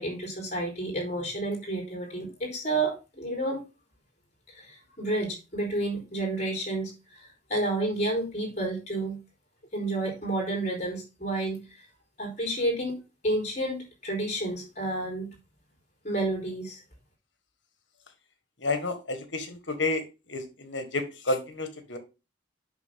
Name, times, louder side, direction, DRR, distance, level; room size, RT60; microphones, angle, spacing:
voice 1, 0.0-3.6 4.5-6.9 7.5-9.2 9.7-11.6 12.2-15.3 16.0-16.8, right 2 dB, 35° left, 0 dB, 4.3 m, -30 dB
voice 2, 18.6-20.0 20.3-22.0, left 2 dB, 75° left, 7 dB, 1.7 m, -30 dB
8.1 x 6.3 x 3.7 m, 0.29 s
head